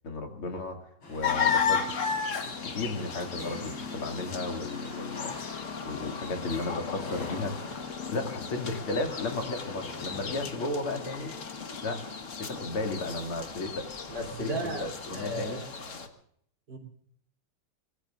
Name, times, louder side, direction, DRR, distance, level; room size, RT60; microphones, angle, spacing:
voice 1, 0.0-1.9 2.4-5.3 5.8-7.6 8.1-11.4 11.8-12.1 12.4-13.9 14.2-15.6, left 2 dB, 85° left, 4 dB, 3.3 m, -34 dB
sound 1, 1.0-11.4, left 2 dB, 70° left, 5.6 m, -46 dB
sound 2, 1.2-16.1, left 6 dB, 40° left, 1.5 m, -34 dB
voice 2, 14.1-16.1 16.7-16.8, right 1 dB, 55° right, 0 dB, 4.1 m, -37 dB
25.0 x 20.5 x 2.5 m, 0.65 s
omnidirectional pair, 2.3 m